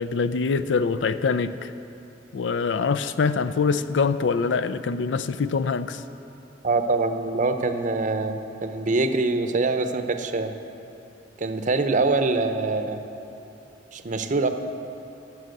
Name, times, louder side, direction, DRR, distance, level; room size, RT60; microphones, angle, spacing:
voice 1, 0.0-1.5 2.3-6.0, left 5 dB, 75° left, 13 dB, 0.4 m, -24 dB
voice 2, 6.6-10.5 11.4-13.0 13.9-14.5, right 3 dB, 45° right, 8 dB, 0.7 m, -24 dB
13.0 x 7.2 x 7.9 m, 2.9 s
head